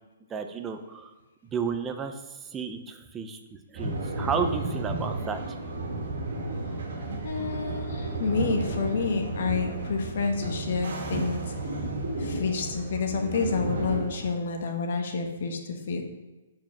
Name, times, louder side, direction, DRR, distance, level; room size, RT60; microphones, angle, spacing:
voice 1, 0.3-1.1 1.4-5.4, right 6 dB, 10° right, 6 dB, 0.5 m, -33 dB
sound 1, 3.7-14.3, right 2 dB, 60° right, 2.3 m, -32 dB
voice 2, 7.2-11.5 12.2-16.0, left 4 dB, 55° left, 4 dB, 1.1 m, -29 dB
7.3 x 4.7 x 5.8 m, 1.2 s
hypercardioid pair, 170°, 0 cm